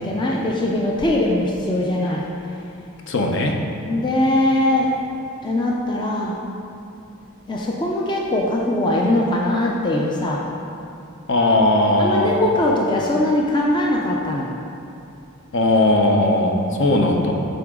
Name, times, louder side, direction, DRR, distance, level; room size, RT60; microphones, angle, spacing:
voice 1, 0.0-2.3 3.9-6.4 7.5-10.4 12.0-14.6, left 1 dB, 20° left, -2 dB, 0.4 m, -21 dB
voice 2, 3.1-3.5 11.3-12.3 15.5-17.3, left 1 dB, 55° left, 2 dB, 0.7 m, -18 dB
9.5 x 3.9 x 3.7 m, 2.7 s
head